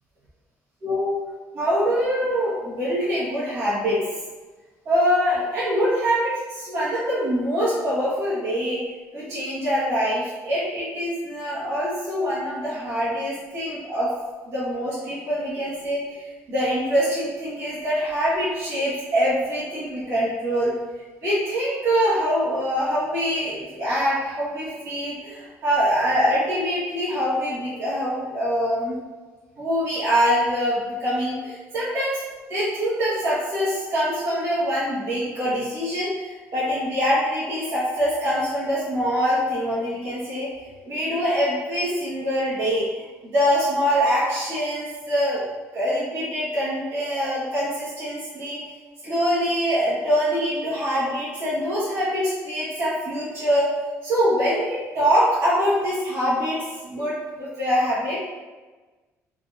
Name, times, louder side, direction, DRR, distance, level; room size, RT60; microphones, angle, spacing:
voice 1, 0.8-1.2 1.5-4.0 4.8-8.8 9.1-14.1 14.4-16.2 16.5-20.7 21.2-29.0 29.6-32.2 32.5-40.5 40.8-42.9 43.2-45.4 45.7-48.6 49.0-53.7 54.0-56.6 56.8-58.1, equal, 50° right, -11 dB, 1.4 m, -24 dB
3.9 x 2.5 x 2.7 m, 1.3 s
cardioid pair, 170°, 6 cm